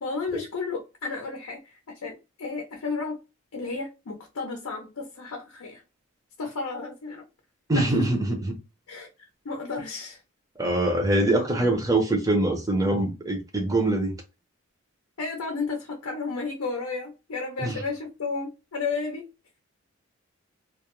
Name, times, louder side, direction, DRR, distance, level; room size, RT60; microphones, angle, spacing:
voice 1, 0.0-3.2 3.5-5.8 6.4-7.3 7.7-7.9 8.9-9.1 9.4-10.2 15.2-19.3, left 4 dB, 80° left, 0.6 m, -32 dB
voice 2, 7.7-8.6 10.6-14.2 17.6-17.8, right 1 dB, 15° right, 0.5 m, -24 dB
2.3 x 2.0 x 2.9 m
head